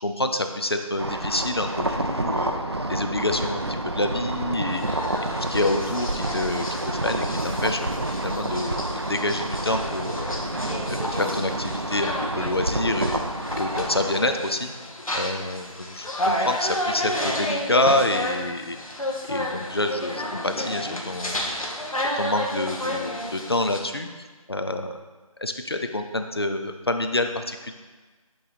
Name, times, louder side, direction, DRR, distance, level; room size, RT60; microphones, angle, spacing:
voice 1, 0.0-2.5 2.9-4.8 5.3-10.4 10.9-13.2 13.5-14.7 15.1-18.8 19.3-21.4 22.1-25.0 25.4-27.7, left 2 dB, 45° left, 6 dB, 0.4 m, -27 dB
sound 1, 1.0-14.1, right 1 dB, 45° right, 0.4 m, -29 dB
sound 2, 4.7-23.8, left 1 dB, 70° left, 1.1 m, -31 dB
8.5 x 3.1 x 3.9 m, 1.3 s
figure-of-eight pair, 180°, 19 cm